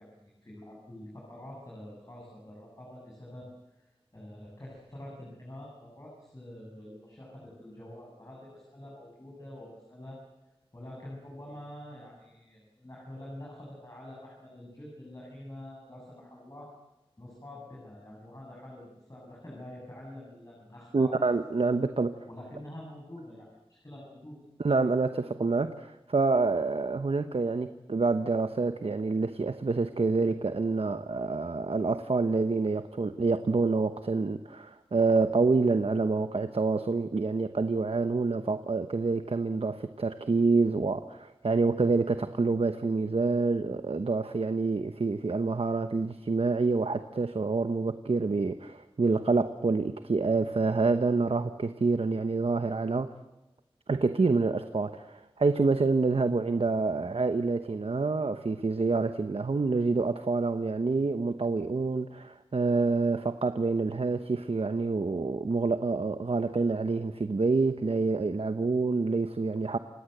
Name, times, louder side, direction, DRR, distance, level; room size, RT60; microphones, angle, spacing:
voice 1, 0.0-3.5 3.8-10.2 10.7-16.7 17.2-21.3 22.3-24.4, left 1 dB, 35° left, 7.4 m, -46 dB
voice 2, 20.9-22.2 24.6-53.1 53.9-69.8, right 3 dB, 75° right, 1.0 m, -27 dB
28.5 x 17.5 x 8.0 m
wide cardioid pair, 55°, 10 cm